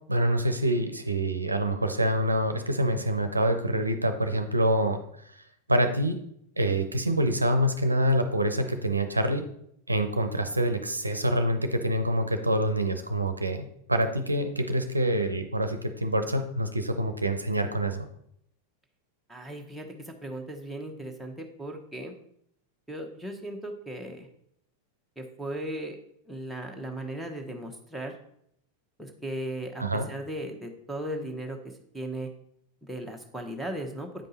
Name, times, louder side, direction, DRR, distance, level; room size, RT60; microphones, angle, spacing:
voice 1, 0.1-5.0 5.7-6.2 6.6-9.4 9.9-18.1 29.8-30.1, right 1 dB, 85° right, 7 dB, 0.6 m, -26 dB
voice 2, 19.3-22.1 22.9-24.3 25.2-26.0 26.3-28.2 29.0-32.3 32.8-34.3, right 1 dB, ahead, 0 dB, 1.2 m, -37 dB
8.8 x 5.2 x 4.1 m, 0.71 s
figure-of-eight pair, 90°, 0 cm